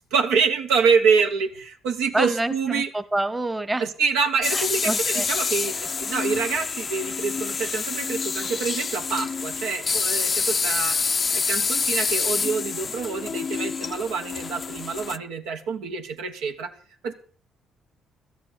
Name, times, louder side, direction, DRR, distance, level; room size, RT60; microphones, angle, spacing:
voice 1, 0.1-2.9 3.8-11.0 11.3-16.7 17.0-17.1, right 5 dB, 85° right, 4 dB, 1.3 m, -26 dB
voice 2, 2.1-3.8 4.5-5.3, right 2 dB, 15° right, 13 dB, 1.0 m, -27 dB
sound 1, 4.4-15.2, left 5 dB, 40° left, 0.5 m, -27 dB
13.0 x 7.5 x 7.1 m, 0.43 s
supercardioid pair, 65°, 0 cm